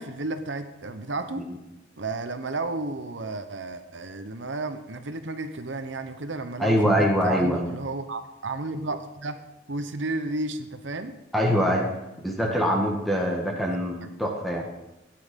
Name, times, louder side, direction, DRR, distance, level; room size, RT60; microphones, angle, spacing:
voice 1, 0.0-1.4 2.0-9.4 9.7-11.1 14.0-14.1, right 2 dB, 65° right, 9 dB, 1.0 m, -32 dB
voice 2, 6.6-7.7 11.3-11.9 12.2-14.7, equal, ahead, -1 dB, 1.6 m, -23 dB
16.0 x 9.6 x 5.2 m, 0.96 s
head